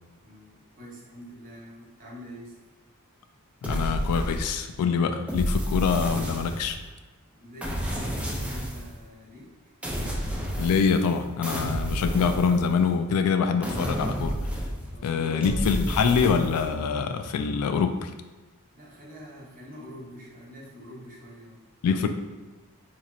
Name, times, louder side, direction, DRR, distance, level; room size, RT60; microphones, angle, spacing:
voice 1, 0.2-2.6 7.3-9.5 14.9-16.2 18.7-21.6, equal, 40° right, -5 dB, 1.0 m, -45 dB
voice 2, 3.6-6.8 10.6-14.4 15.0-18.1 21.8-22.1, left 6 dB, 90° left, 9 dB, 0.3 m, -25 dB
sound 1, 3.6-4.8 5.3-6.9 7.6-8.9 9.8-11.1 11.4-13.0 13.6-15.0 15.4-16.7, equal, 5° right, 0.4 m, -30 dB
4.1 x 3.0 x 2.4 m, 1.2 s
head